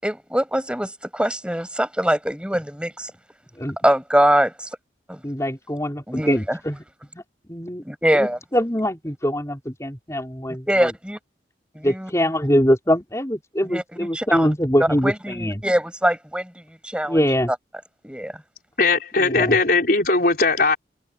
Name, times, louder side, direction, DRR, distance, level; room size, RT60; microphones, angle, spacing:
voice 1, 0.0-3.1 3.8-4.7 5.1-5.2 6.1-6.6 7.8-8.4 10.7-11.2 11.7-12.1 13.7-14.5 15.0-17.2 18.0-18.4, equal, 5° right, 6.5 m, -23 dB
voice 2, 5.2-6.8 7.1-7.2 7.5-7.8 8.1-10.9 11.8-15.6 17.1-17.5 19.2-19.6, equal, 15° left, 5.0 m, -23 dB
voice 3, 18.8-20.8, left 3 dB, 50° left, 5.4 m, -19 dB
head